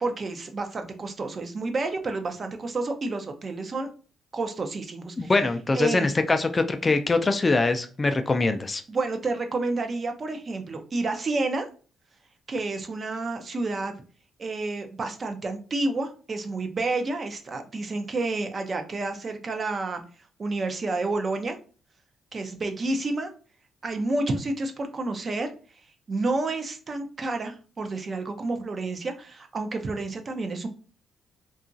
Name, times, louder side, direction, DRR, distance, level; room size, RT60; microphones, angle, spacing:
voice 1, 0.0-3.9 4.3-5.3 5.7-6.1 8.9-11.7 12.5-13.9 14.4-20.0 20.4-21.6 22.3-23.3 23.8-25.5 26.1-30.7, right 3 dB, 40° right, 6 dB, 0.5 m, -29 dB
voice 2, 5.2-8.8, left 3 dB, 25° left, 8 dB, 0.3 m, -23 dB
2.8 x 2.3 x 2.6 m, 0.39 s
cardioid pair, 90°, 0 cm